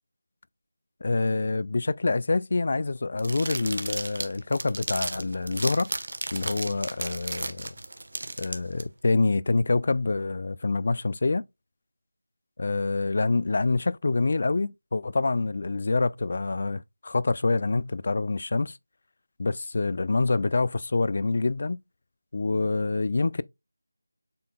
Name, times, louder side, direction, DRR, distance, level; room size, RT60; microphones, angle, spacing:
voice 1, 1.0-5.9 6.3-7.7 8.4-11.4 12.6-18.8 19.4-21.8 22.3-23.4, left 3 dB, 40° left, 0.4 m, -26 dB
sound 1, 3.2-8.8, right 2 dB, 60° right, 1.3 m, -34 dB
7.6 x 5.7 x 2.3 m
figure-of-eight pair, 175°, 0 cm